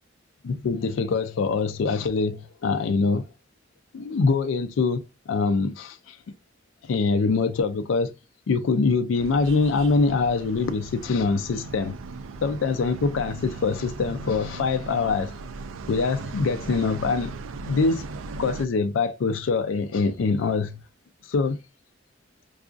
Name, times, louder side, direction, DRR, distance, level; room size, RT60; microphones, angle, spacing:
voice 1, 0.4-3.3 3.9-6.2 6.8-8.1 8.5-12.0 12.4-15.3 15.9-17.4 17.7-18.0 18.4-20.8 21.2-21.6, left 4 dB, 75° left, 0.4 m, -24 dB
sound 1, 9.1-18.7, right 3 dB, 90° right, 0.4 m, -38 dB
4.7 x 2.4 x 2.3 m
head